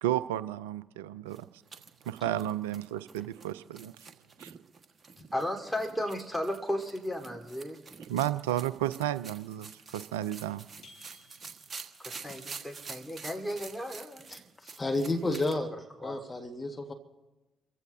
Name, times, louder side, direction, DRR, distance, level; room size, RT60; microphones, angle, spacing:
voice 1, 0.0-1.4 2.1-3.9 8.1-10.6, right 12 dB, 85° right, 15 dB, 0.4 m, -32 dB
sound 1, 1.3-15.6, right 4 dB, 45° right, 1.5 m, -48 dB
voice 2, 5.3-7.8 12.0-14.3 15.5-16.2, equal, 5° left, 0 dB, 3.9 m, -35 dB
sound 2, 10.8-11.9, left 3 dB, 65° left, 6.8 m, -56 dB
voice 3, 14.3-15.7 16.0-16.9, left 2 dB, 30° left, 4 dB, 1.6 m, -31 dB
28.0 x 15.5 x 2.7 m, 1.1 s
hypercardioid pair, 45°, 0 cm